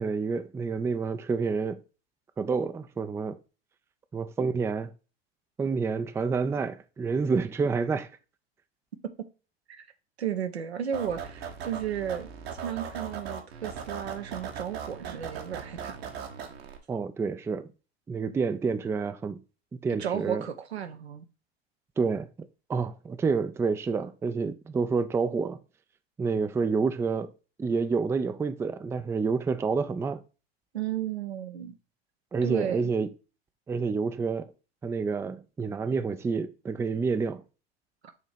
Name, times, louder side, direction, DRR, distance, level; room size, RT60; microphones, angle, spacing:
voice 1, 0.0-1.8 2.4-3.4 4.1-4.9 5.6-8.1 16.9-17.7 18.1-19.4 19.7-20.5 22.0-22.3 22.7-25.6 26.2-27.3 27.6-30.2 32.3-33.1 33.7-34.5 34.8-37.4, right 5 dB, 10° right, 0.4 m, -28 dB
voice 2, 10.2-12.3 12.6-16.0 20.0-21.3 30.7-31.8 32.4-32.8, right 9 dB, 85° right, 0.8 m, -33 dB
sound 1, 10.9-16.8, right 7 dB, 70° right, 1.4 m, -39 dB
6.8 x 3.0 x 5.0 m
hypercardioid pair, 85°, 32 cm